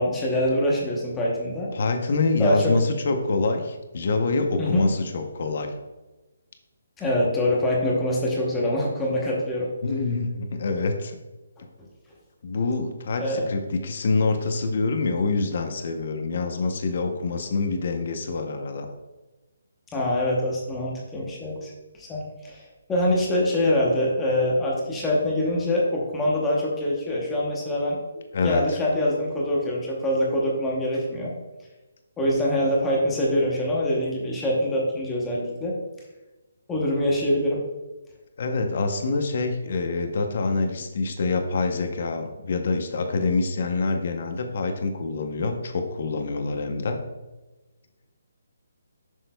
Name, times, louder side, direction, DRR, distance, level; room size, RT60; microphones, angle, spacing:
voice 1, 0.0-1.7 2.4-2.8 4.6-4.9 7.0-9.7 11.8-11.9 13.2-13.5 19.9-28.0 28.4-31.3 32.2-35.8 36.7-37.6, left 1 dB, 5° left, -4 dB, 0.8 m, -24 dB
voice 2, 1.7-5.7 9.8-11.2 12.4-18.9 28.3-28.6 38.4-47.0, left 3 dB, 40° left, 5 dB, 0.7 m, -26 dB
7.7 x 6.3 x 2.2 m, 1.1 s
hypercardioid pair, 175°, 0 cm